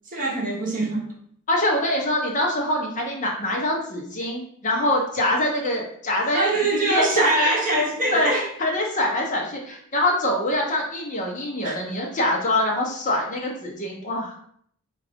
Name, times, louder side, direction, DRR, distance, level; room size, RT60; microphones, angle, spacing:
voice 1, 0.1-1.1 6.3-8.5 11.6-11.8, right 2 dB, 35° right, -2 dB, 1.0 m, -23 dB
voice 2, 1.5-7.6 8.1-8.3 8.6-14.3, left 1 dB, 35° left, 0 dB, 0.8 m, -24 dB
4.8 x 2.5 x 3.5 m, 0.64 s
head